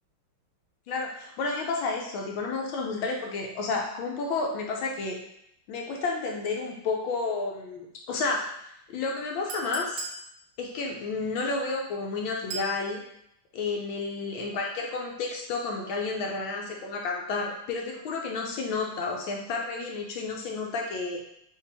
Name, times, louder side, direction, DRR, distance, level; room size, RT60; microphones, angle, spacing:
voice 1, 0.9-5.2 5.7-8.5 8.9-10.1 10.6-13.0 13.5-21.3, left 3 dB, 75° left, 0 dB, 1.4 m, -31 dB
Chink clink, 9.5-10.2 12.5-12.8, right 4 dB, 80° right, 1.5 m, -36 dB
4.8 x 3.0 x 3.4 m, 0.75 s
omnidirectional pair, 2.3 m